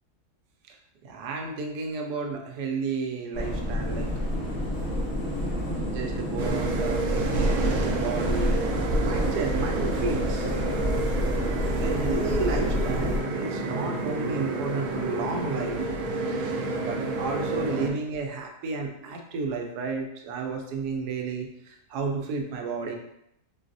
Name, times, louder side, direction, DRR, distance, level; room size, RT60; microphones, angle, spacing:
voice 1, 1.0-4.1 5.9-10.5 11.2-11.3 11.8-15.8 16.8-21.5 21.9-23.0, right 4 dB, 85° right, 3 dB, 1.1 m, -32 dB
sound 1, 3.3-13.2, left 1 dB, 50° left, 1.2 m, -28 dB
sound 2, 6.4-17.9, right 3 dB, 65° right, 0.8 m, -29 dB
3.9 x 2.3 x 2.5 m, 0.77 s
omnidirectional pair, 1.7 m